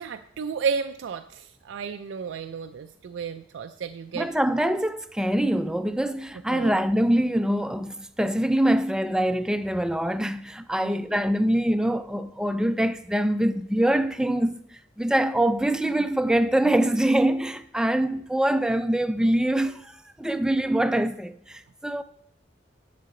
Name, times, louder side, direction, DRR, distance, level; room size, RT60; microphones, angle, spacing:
voice 1, 0.0-4.3 6.5-6.7 10.8-10.9, right 6 dB, 90° right, 0.4 m, -32 dB
voice 2, 4.1-14.6 15.0-22.0, right 1 dB, 5° right, 0.4 m, -24 dB
10.5 x 6.7 x 3.8 m
head